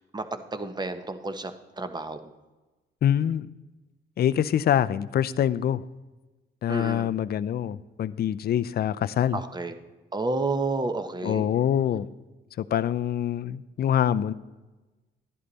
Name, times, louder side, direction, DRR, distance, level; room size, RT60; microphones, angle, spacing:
voice 1, 0.0-1.5 1.8-2.2 6.7-7.1 9.3-9.7 10.1-11.5, right 3 dB, 20° right, 9 dB, 1.1 m, -30 dB
voice 2, 3.0-3.5 4.2-5.8 6.6-9.4 11.2-12.1 12.6-14.3, left 10 dB, 50° left, 15 dB, 0.5 m, -25 dB
11.5 x 11.0 x 4.1 m, 1.2 s
cardioid pair, 90°, 20 cm